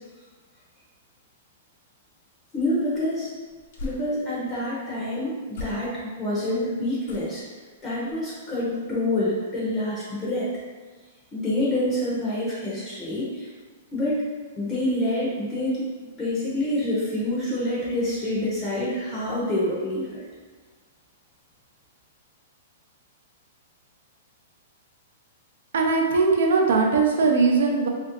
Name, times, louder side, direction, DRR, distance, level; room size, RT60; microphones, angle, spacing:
voice 1, 2.5-3.3 3.8-7.4 7.8-10.5 11.3-13.5 13.9-14.2 14.6-20.2, left 1 dB, 15° left, -7 dB, 0.6 m, -27 dB
sound 1, 2.9-4.6 5.5-6.3 7.0-7.6 8.0-8.3 8.7-8.8, left 1 dB, 55° left, 0.6 m, -41 dB
voice 2, 25.7-27.9, right 4 dB, 75° right, 1 dB, 0.5 m, -20 dB
3.0 x 2.5 x 2.9 m, 1.4 s
hypercardioid pair, 170°, 0 cm